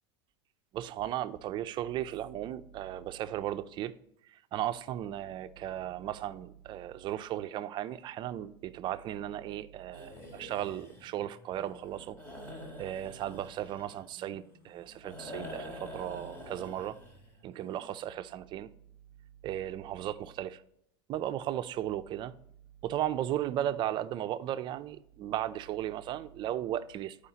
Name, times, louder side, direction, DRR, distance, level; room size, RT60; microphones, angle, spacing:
voice 1, 0.7-3.9 4.5-12.2 12.8-17.0 17.4-18.7 19.4-20.6 21.1-22.3 22.8-27.2, right 12 dB, 35° right, 0.4 m, -36 dB
sound 1, 9.9-18.1, left 1 dB, 15° left, 1.9 m, -48 dB
13.0 x 4.9 x 2.8 m
supercardioid pair, 135°, 13 cm